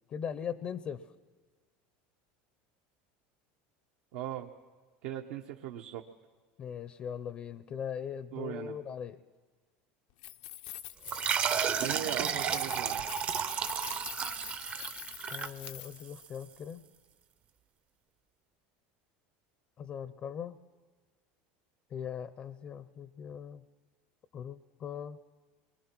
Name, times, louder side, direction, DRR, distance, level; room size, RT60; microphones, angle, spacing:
voice 1, 0.1-1.0 6.6-9.2 15.3-16.8 19.8-20.6 21.9-23.6 24.3-25.2, left 8 dB, 30° left, 14 dB, 0.6 m, -40 dB
voice 2, 4.1-4.5 5.0-6.0 8.3-8.8 11.8-13.0, right 11 dB, 75° right, 2 dB, 1.0 m, -39 dB
Keys jangling, 10.1-16.2, left 15 dB, 70° left, 0.7 m, -45 dB
sound 1, 11.1-16.2, right 8 dB, 30° right, 0.6 m, -33 dB
29.5 x 22.5 x 6.1 m, 1.4 s
cardioid pair, 150°, 4 cm